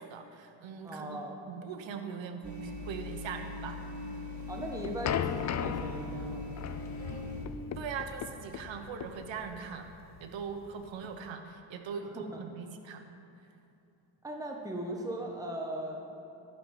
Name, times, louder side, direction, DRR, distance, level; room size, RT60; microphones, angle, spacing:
voice 1, 0.0-1.2 1.5-3.8 7.0-7.4 7.8-9.9 10.2-13.0, right 6 dB, 70° right, 6 dB, 1.1 m, -41 dB
voice 2, 0.8-1.4 4.5-6.5 12.1-12.4 14.2-16.1, right 1 dB, 5° right, 1 dB, 1.2 m, -38 dB
sound 1, 2.4-7.5, left 1 dB, 35° right, 1.7 m, -41 dB
sound 2, 4.4-11.3, left 9 dB, 40° left, 0.4 m, -37 dB
12.0 x 5.5 x 7.4 m, 2.8 s
cardioid pair, 90°, 47 cm